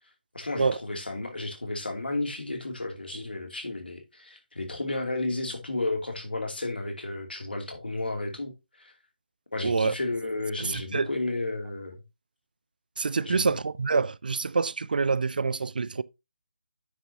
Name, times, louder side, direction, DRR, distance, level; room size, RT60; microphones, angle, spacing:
voice 1, 0.3-8.9 9.5-12.0 13.2-13.5, left 2 dB, 80° left, 2.5 m, -33 dB
voice 2, 9.6-9.9 10.6-11.1 13.0-16.0, right 4 dB, 60° right, 0.4 m, -26 dB
9.5 x 6.8 x 2.7 m
figure-of-eight pair, 155°, 5 cm